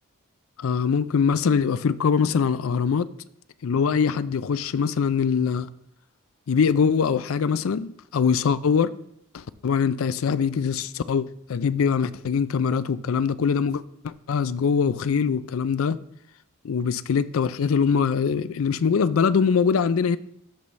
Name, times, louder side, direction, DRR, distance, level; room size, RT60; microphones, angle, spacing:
voice 1, 0.6-3.1 3.6-5.7 6.5-8.9 9.3-16.0 16.6-20.2, left 6 dB, 75° left, 0.4 m, -23 dB
13.0 x 5.4 x 3.2 m
head